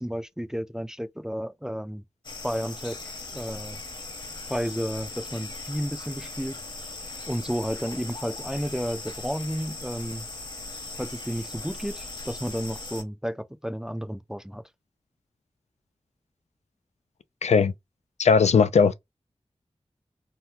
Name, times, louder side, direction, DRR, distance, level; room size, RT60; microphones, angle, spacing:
voice 1, 0.0-2.0 2.4-3.0 3.3-3.8 4.5-6.6 7.3-10.3 11.0-14.6, equal, 5° right, 0.4 m, -32 dB
sound 1, 2.2-13.0, left 3 dB, 45° left, 0.9 m, -39 dB
voice 2, 17.4-17.7 18.2-18.9, left 5 dB, 85° left, 0.4 m, -18 dB
2.8 x 2.1 x 3.4 m
wide cardioid pair, 65°, 11 cm